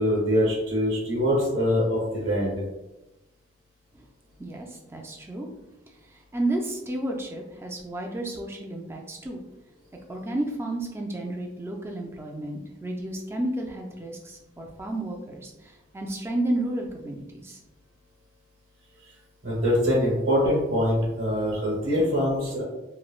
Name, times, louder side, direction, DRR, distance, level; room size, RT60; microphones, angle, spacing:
voice 1, 0.0-2.5 19.4-22.6, equal, 55° right, -7 dB, 0.9 m, -24 dB
voice 2, 4.4-5.5 6.1-9.4 10.1-17.6, right 1 dB, 15° right, 0 dB, 0.3 m, -32 dB
3.0 x 2.1 x 2.4 m, 0.99 s
head